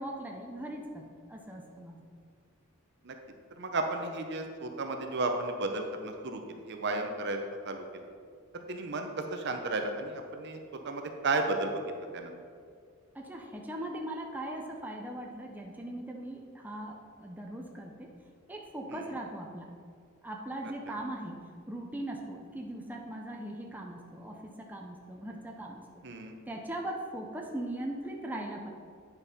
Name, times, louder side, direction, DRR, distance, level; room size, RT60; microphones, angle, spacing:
voice 1, 0.0-2.0 13.1-18.1 18.5-19.7 20.2-21.4 21.7-25.8 26.5-28.7, right 1 dB, 10° right, 0 dB, 0.6 m, -40 dB
voice 2, 3.6-8.1 8.5-11.8 12.1-12.4 18.9-19.0 26.0-26.4, right 2 dB, 55° right, 5 dB, 0.7 m, -33 dB
9.1 x 5.4 x 4.2 m, 2.2 s
head